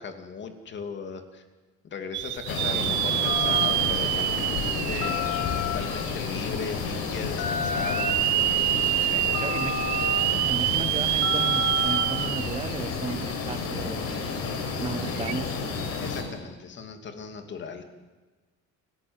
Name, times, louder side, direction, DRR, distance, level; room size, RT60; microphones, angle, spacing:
voice 1, 0.0-1.4 1.9-5.2 5.7-8.1 9.1-9.8 16.0-17.8, left 5 dB, 40° left, 6 dB, 2.7 m, -38 dB
sound 1, 2.1-6.1 6.6-6.7 7.8-12.7 13.1-13.2 15.2-15.3, right 17 dB, 75° right, 0.7 m, -26 dB
sound 2, 2.5-16.2, left 4 dB, 55° left, 5.1 m, -31 dB
Telephone, 3.2-12.8, left 6 dB, 90° left, 3.9 m, -33 dB
voice 2, 9.4-9.9 10.5-14.4 14.8-15.6, right 5 dB, 20° right, 13 dB, 1.1 m, -35 dB
29.5 x 12.5 x 9.7 m, 1.2 s
cardioid pair, 145°, 29 cm